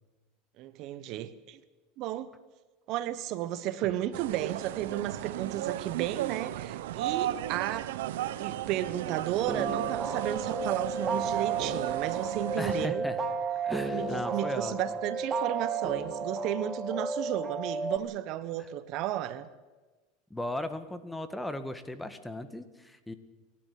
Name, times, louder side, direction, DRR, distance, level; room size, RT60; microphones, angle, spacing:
voice 1, 0.6-1.6 2.0-2.3 2.9-7.9 8.4-13.1 13.9-19.5, right 13 dB, 55° right, 14 dB, 1.2 m, -33 dB
sound 1, 4.1-12.9, right 13 dB, 80° right, 0.9 m, -35 dB
sound 2, 9.5-18.0, right 4 dB, 25° right, 2.5 m, -33 dB
voice 2, 12.6-13.2 13.6-15.0 18.6-18.7 20.3-23.1, left 1 dB, 5° left, 11 dB, 1.7 m, -37 dB
29.0 x 12.0 x 8.5 m, 1.2 s
supercardioid pair, 115°, 0 cm